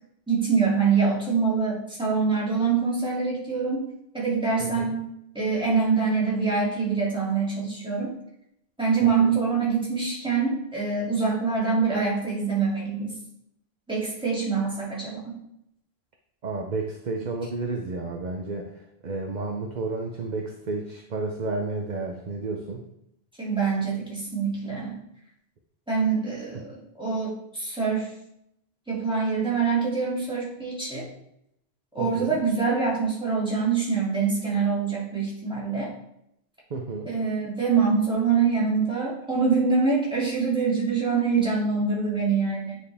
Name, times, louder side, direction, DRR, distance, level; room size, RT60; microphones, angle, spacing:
voice 1, 0.3-3.9 4.1-5.0 5.3-8.1 8.8-13.1 13.9-15.4 23.4-25.0 25.9-28.1 28.9-31.1 31.9-35.9 37.0-42.8, right 5 dB, 5° right, -7 dB, 2.5 m, -25 dB
voice 2, 4.6-4.9 9.0-9.3 16.4-18.7 19.0-22.8 26.5-26.6 32.0-32.4 36.7-37.1, right 3 dB, 50° right, 2 dB, 0.8 m, -31 dB
9.4 x 4.7 x 3.4 m, 0.77 s
omnidirectional pair, 1.0 m